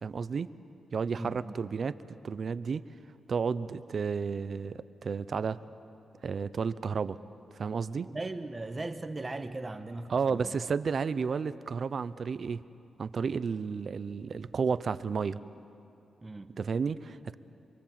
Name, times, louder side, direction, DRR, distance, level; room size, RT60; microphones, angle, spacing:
voice 1, 0.0-0.5 0.9-2.9 3.3-5.6 6.2-7.2 7.5-8.1 10.1-12.6 13.0-15.4 16.6-17.3, right 5 dB, 50° right, 0.7 m, -32 dB
voice 2, 1.1-1.5 8.0-10.5 16.2-16.5, right 2 dB, 25° right, 1.3 m, -38 dB
26.5 x 23.0 x 7.6 m
cardioid pair, 110°, 0 cm